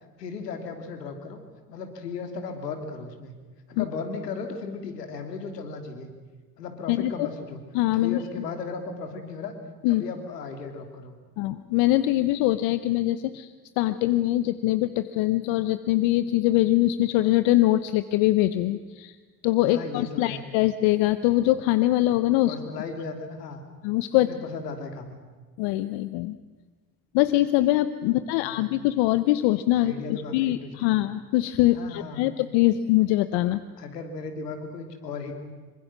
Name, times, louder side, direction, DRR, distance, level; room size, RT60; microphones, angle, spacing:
voice 1, 0.2-1.4 1.7-3.3 3.7-6.1 6.6-7.6 7.9-9.5 9.9-11.2 19.6-20.4 22.4-23.6 24.2-25.2 28.1-28.8 29.8-31.0 31.7-32.2 33.8-35.3, left 4 dB, 90° left, 6 dB, 3.0 m, -36 dB
voice 2, 6.9-7.3 7.7-8.2 9.8-10.0 11.4-13.5 13.8-19.2 19.4-22.6 23.8-24.3 25.6-26.4 27.1-33.6, left 16 dB, 70° left, 13 dB, 1.1 m, -23 dB
26.0 x 25.0 x 6.2 m, 1.4 s
hypercardioid pair, 55°, 47 cm